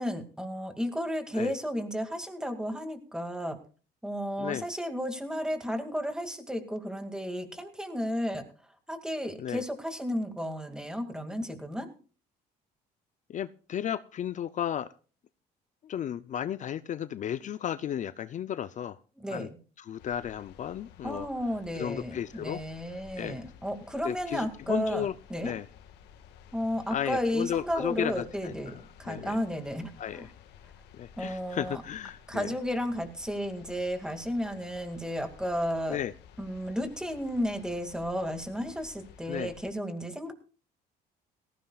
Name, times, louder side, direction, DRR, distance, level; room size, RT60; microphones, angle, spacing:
voice 1, 0.0-3.6 4.0-8.4 8.9-11.9 19.2-19.6 21.0-25.5 26.5-30.3 31.2-31.8 32.3-36.0 36.4-40.3, equal, 5° right, 7 dB, 2.2 m, -33 dB
voice 2, 13.3-14.9 15.8-19.0 19.3-19.5 19.8-21.3 21.7-22.6 23.2-23.4 24.0-25.1 25.4-25.7 26.9-28.7 29.1-29.4 30.0-30.3 30.9-32.5 35.9-36.1 39.3-39.5, left 10 dB, 45° left, 14 dB, 0.5 m, -34 dB
sound 1, 20.0-39.7, left 8 dB, 85° left, 1.7 m, -54 dB
18.0 x 15.0 x 2.4 m, 0.37 s
cardioid pair, 110°, 17 cm